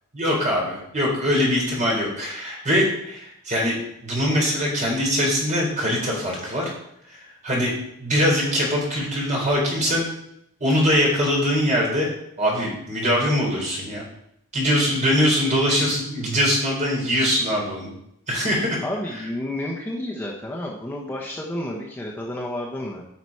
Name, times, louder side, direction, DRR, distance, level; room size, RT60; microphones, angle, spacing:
voice 1, 0.1-6.7 7.1-7.7 8.0-10.1 10.6-12.1 12.4-14.0 14.5-17.9 18.3-18.8, equal, 35° right, -3 dB, 3.9 m, -22 dB
voice 2, 18.8-23.0, left 1 dB, 10° left, -3 dB, 1.1 m, -30 dB
9.7 x 6.0 x 4.8 m, 0.77 s
head